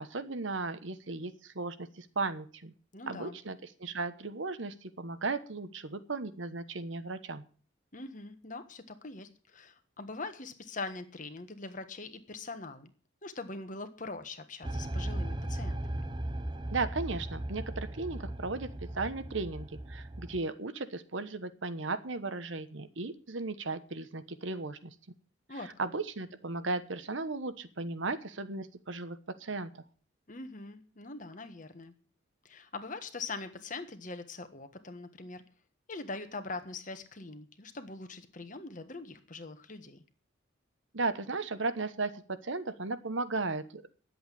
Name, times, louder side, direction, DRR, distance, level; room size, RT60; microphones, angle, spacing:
voice 1, 0.0-2.7 3.1-7.4 16.7-24.9 25.5-29.8 40.9-43.9, right 3 dB, 70° right, 12 dB, 1.1 m, -36 dB
voice 2, 2.9-3.4 7.9-12.9 13.2-16.0 25.5-25.7 30.3-31.9 32.4-35.4 35.9-40.0, left 3 dB, 40° left, 9 dB, 1.4 m, -42 dB
sound 1, 14.6-20.4, right 1 dB, 25° right, 0.8 m, -37 dB
11.5 x 7.9 x 8.4 m, 0.40 s
head